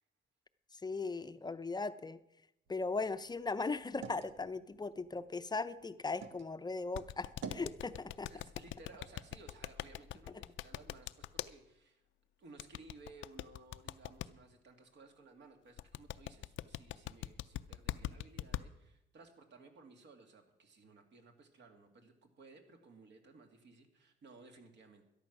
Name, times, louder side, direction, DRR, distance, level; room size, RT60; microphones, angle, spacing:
voice 1, 0.8-2.2 2.7-8.3, left 3 dB, 20° left, 11 dB, 0.6 m, -38 dB
sound 1, 2.7-6.5 6.9-7.8, right 6 dB, 80° right, 1.4 m, -51 dB
sound 2, 6.9-11.5 12.6-14.3 15.8-18.6, left 14 dB, 75° left, 0.5 m, -41 dB
voice 2, 8.3-12.0 12.4-25.1, right 3 dB, 65° right, 4 dB, 2.3 m, -58 dB
13.0 x 11.5 x 6.1 m, 0.88 s
cardioid pair, 90°, 20 cm